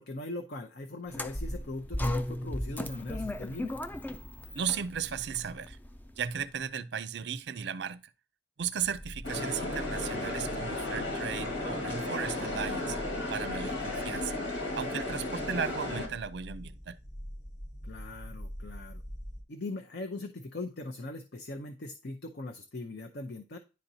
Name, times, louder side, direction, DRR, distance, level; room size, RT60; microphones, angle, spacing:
voice 1, 0.0-3.7 17.8-19.0 19.5-23.6, left 2 dB, 55° left, 0.6 m, -40 dB
sound 1, 1.1-6.3, left 1 dB, 10° left, 0.3 m, -36 dB
voice 2, 4.5-5.8 6.2-8.0 8.6-13.0 13.3-14.4 14.8-17.0, right 7 dB, 60° right, 0.4 m, -35 dB
sound 2, 8.8-19.4, equal, 40° left, 1.2 m, -45 dB
sound 3, 9.2-16.1, left 2 dB, 75° left, 1.9 m, -34 dB
10.5 x 4.2 x 2.7 m
head